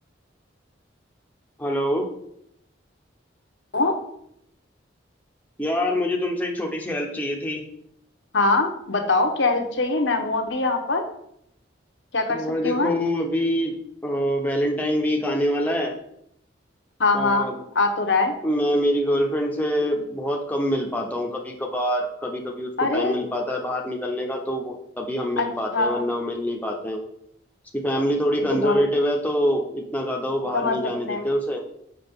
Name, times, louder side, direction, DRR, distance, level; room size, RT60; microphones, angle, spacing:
voice 1, 1.6-2.1 5.6-7.6 12.3-13.8 14.0-15.9 17.1-17.6 18.4-27.0 27.7-31.6, equal, 10° left, 0 dB, 0.8 m, -25 dB
voice 2, 8.3-11.0 12.1-12.9 17.0-17.5 17.7-18.3 22.8-23.2 25.4-25.5 25.7-26.1 28.5-28.8 30.5-30.8 31.1-31.2, left 3 dB, 70° left, 4 dB, 1.0 m, -22 dB
6.3 x 5.9 x 3.6 m, 0.73 s
head